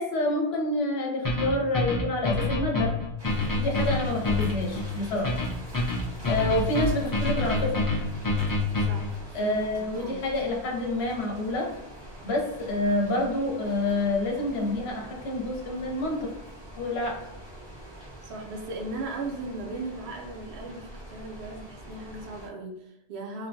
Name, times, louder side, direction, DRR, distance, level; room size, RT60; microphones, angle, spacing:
voice 1, 0.0-2.9 3.5-5.3 6.3-7.9 9.3-11.7 12.2-16.3 16.7-17.2, left 1 dB, 60° left, -1 dB, 0.9 m, -28 dB
sound 1, 1.2-9.1, left 2 dB, 25° left, 0.4 m, -27 dB
sound 2, 3.2-22.5, right 1 dB, 25° right, 0.7 m, -43 dB
voice 2, 8.8-10.2 18.2-23.5, right 2 dB, 65° right, 0 dB, 0.8 m, -38 dB
3.1 x 2.2 x 2.6 m, 0.86 s
omnidirectional pair, 1.2 m